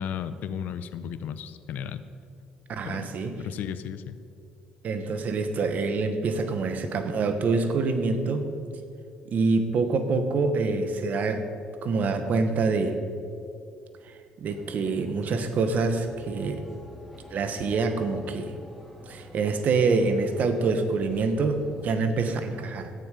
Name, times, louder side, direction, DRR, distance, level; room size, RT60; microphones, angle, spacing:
voice 1, 0.0-2.0 2.8-3.1 3.4-4.1, left 8 dB, 75° left, 13 dB, 0.6 m, -34 dB
voice 2, 2.7-3.3 4.8-8.5 9.3-11.5 11.8-13.0 14.4-16.6 17.3-18.5 19.1-22.9, right 4 dB, 60° right, 8 dB, 1.2 m, -26 dB
sound 1, 14.5-21.9, left 1 dB, ahead, 3.0 m, -48 dB
13.0 x 9.3 x 5.1 m, 2.5 s
supercardioid pair, 70°, 3 cm